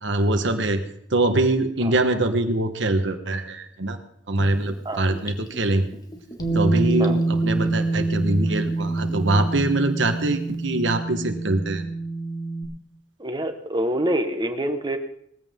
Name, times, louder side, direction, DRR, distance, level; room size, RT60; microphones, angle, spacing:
voice 1, 0.0-0.8 1.1-4.0 4.3-5.9 6.5-11.8, right 2 dB, 70° right, 7 dB, 1.4 m, -23 dB
Gurgling / Bathtub (filling or washing), 4.4-9.5 9.9-10.0, equal, 20° left, 1.7 m, -40 dB
Bass guitar, 6.4-12.6, right 2 dB, 90° left, 5.1 m, -26 dB
voice 2, 13.2-15.0, right 1 dB, 25° right, 7 dB, 1.4 m, -26 dB
19.5 x 15.0 x 3.8 m, 0.73 s
head